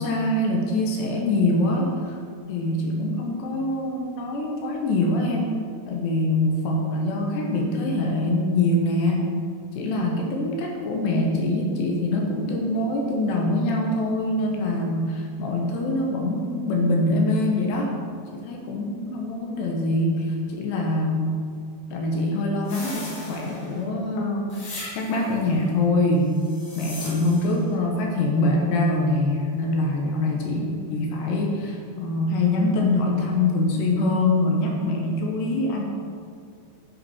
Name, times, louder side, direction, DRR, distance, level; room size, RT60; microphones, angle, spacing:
voice 1, 0.0-2.1 2.5-5.5 5.9-9.3 9.8-17.9 18.3-21.4 21.9-26.3 26.8-35.8, left 2 dB, 70° left, 0 dB, 2.8 m, -24 dB
sound 1, 22.6-23.8 24.5-25.4 26.3-27.6, left 1 dB, 45° left, 2.5 m, -38 dB
10.0 x 9.0 x 4.3 m, 2.4 s
omnidirectional pair, 5.8 m